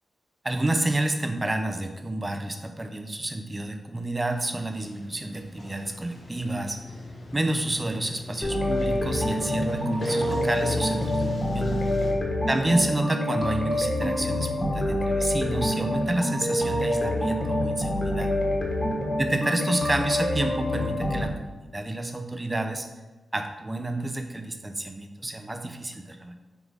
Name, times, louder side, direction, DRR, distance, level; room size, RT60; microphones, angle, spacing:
voice 1, 0.4-6.8 7.3-11.8 12.5-18.3 19.2-22.9 23.3-26.5, right 1 dB, 15° right, 6 dB, 0.5 m, -29 dB
Sliding door, 4.2-12.1, left 2 dB, 50° left, 1.1 m, -38 dB
sound 1, 8.4-21.2, left 1 dB, 20° left, 1.1 m, -26 dB
4.7 x 3.7 x 5.5 m, 1.2 s
wide cardioid pair, 165°, 0 cm